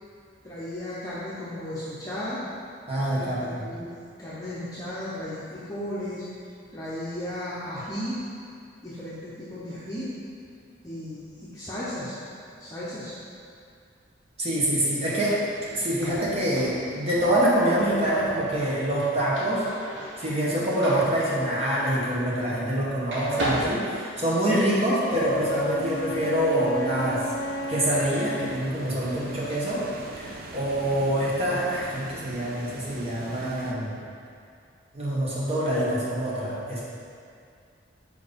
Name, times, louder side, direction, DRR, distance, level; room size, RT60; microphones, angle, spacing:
voice 1, 0.4-2.4 3.2-6.2 6.7-8.2 8.8-10.1 10.8-12.2 12.6-13.2, left 1 dB, 20° left, -10 dB, 0.8 m, -35 dB
voice 2, 2.9-3.6 14.4-15.4 15.7-19.6 20.2-27.3 27.7-29.8 30.2-34.0 34.9-36.8, right 1 dB, 30° right, -7 dB, 1.0 m, -25 dB
sound 1, 15.0-22.8 23.1-24.7, right 1 dB, 75° right, 1.3 m, -36 dB
Wind instrument woodwind instrument, 25.1-28.6, left 1 dB, 75° left, 0.4 m, -32 dB
sound 2, 25.1-33.7, right 2 dB, 50° right, 0.5 m, -42 dB
4.8 x 4.5 x 5.2 m, 2.4 s
head